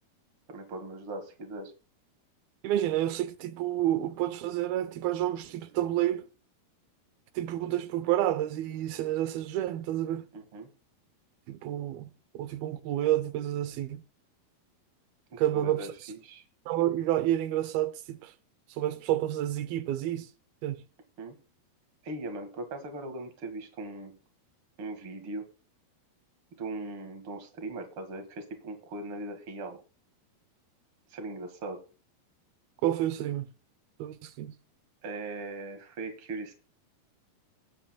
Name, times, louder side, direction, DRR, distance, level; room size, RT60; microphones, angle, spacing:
voice 1, 0.5-1.7 10.3-10.7 15.3-16.4 21.2-21.3 22.0-24.2 24.8-25.5 26.5-29.8 31.1-31.8 35.0-36.5, right 2 dB, 45° right, 2.0 m, -39 dB
voice 2, 2.6-6.3 7.4-10.3 11.5-14.0 15.4-15.9 16.7-18.3 18.7-20.3 20.6-20.8 32.8-33.5 34.0-34.5, right 13 dB, 80° right, 2.5 m, -29 dB
19.0 x 9.1 x 2.2 m
omnidirectional pair, 4.5 m